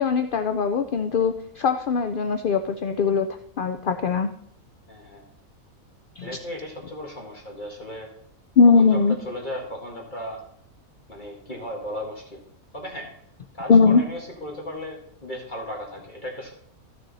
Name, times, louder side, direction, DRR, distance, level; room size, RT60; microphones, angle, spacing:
voice 1, 0.0-3.3 3.6-4.3 6.2-6.3 8.6-9.2 13.7-14.0, left 5 dB, 65° left, 8 dB, 0.5 m, -20 dB
voice 2, 4.9-5.3 6.2-8.1 8.8-9.0 9.2-10.4 11.1-12.4 12.7-13.1 13.5-16.5, left 1 dB, 35° left, -1 dB, 1.9 m, -36 dB
14.0 x 6.7 x 4.1 m, 0.72 s
omnidirectional pair, 1.5 m